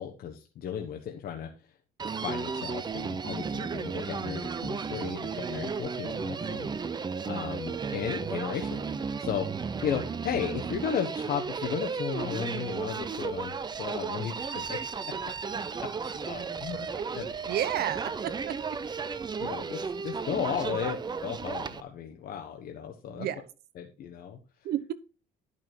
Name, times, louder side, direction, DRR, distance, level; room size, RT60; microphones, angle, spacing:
voice 1, 0.0-1.7 2.2-8.9 9.2-9.4 9.8-15.1 16.2-16.9 17.1-17.3 19.4-23.3 23.7-24.4, left 8 dB, 60° left, 2 dB, 1.3 m, -35 dB
Human voice, 2.0-21.8, right 5 dB, 25° right, 0.7 m, -34 dB
voice 2, 17.5-18.6 20.6-20.8 23.1-23.4 24.6-24.9, right 11 dB, 70° right, 15 dB, 1.0 m, -31 dB
11.0 x 5.9 x 4.6 m, 0.33 s
cardioid pair, 110°, 17 cm